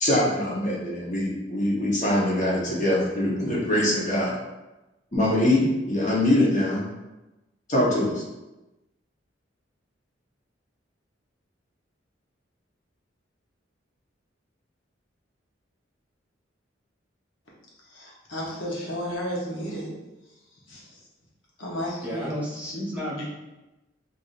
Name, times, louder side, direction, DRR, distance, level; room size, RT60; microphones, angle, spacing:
voice 1, 0.0-4.3 5.1-6.8 7.7-8.2, left 1 dB, 40° left, -5 dB, 1.1 m, -23 dB
voice 2, 17.9-19.9 20.7-21.0 21.6-22.4 23.2-23.3, equal, 80° left, -5 dB, 1.0 m, -33 dB
voice 3, 22.0-23.2, equal, 10° right, -7 dB, 1.1 m, -32 dB
4.7 x 2.7 x 2.6 m, 1.0 s
head